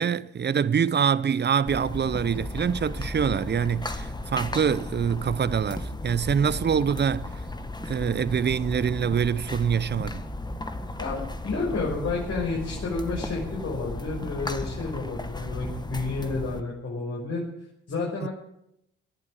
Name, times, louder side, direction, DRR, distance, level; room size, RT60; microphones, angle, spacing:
voice 1, 0.0-7.3 7.9-10.2 18.2-18.3, right 7 dB, 35° right, 0.7 m, -25 dB
sound 1, 1.7-16.6, left 2 dB, 15° left, 1.7 m, -35 dB
voice 2, 11.4-17.4 17.9-18.3, left 3 dB, 50° left, 5.9 m, -30 dB
18.0 x 11.0 x 6.5 m
hypercardioid pair, 60°, 31 cm